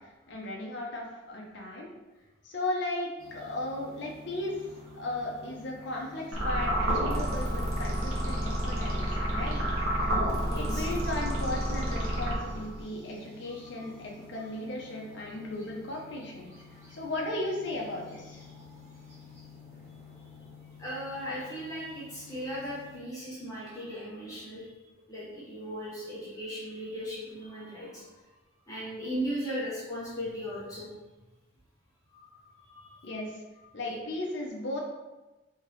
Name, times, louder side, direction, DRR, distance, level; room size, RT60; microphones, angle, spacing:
voice 1, 0.3-1.9 2.4-4.7 4.9-9.6 10.6-16.5 16.9-18.4 33.0-33.4 33.7-34.8, left 1 dB, 55° left, -1 dB, 0.6 m, -36 dB
sound 1, 3.2-23.0, left 4 dB, 15° right, 0.8 m, -51 dB
sound 2, 6.3-12.8, equal, 80° right, 0.9 m, -29 dB
voice 2, 10.5-10.9 13.6-13.9 18.5-18.6 20.8-24.7 25.0-28.1 28.7-30.9 32.1-32.3 32.6-33.1 33.8-34.0, equal, 15° left, -8 dB, 0.7 m, -37 dB
3.5 x 2.7 x 3.0 m, 1.1 s
head